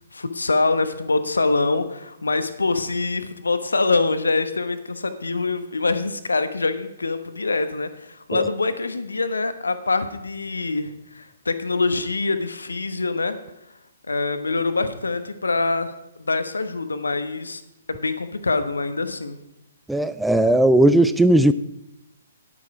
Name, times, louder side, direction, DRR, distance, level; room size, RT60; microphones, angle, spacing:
voice 1, 0.1-13.4 14.1-15.9 16.2-17.6 17.9-19.4, left 3 dB, 75° left, 10 dB, 1.0 m, -24 dB
voice 2, 19.9-21.5, right 1 dB, 5° right, 12 dB, 0.3 m, -17 dB
10.5 x 8.6 x 4.8 m, 0.86 s
figure-of-eight pair, 125°, 0 cm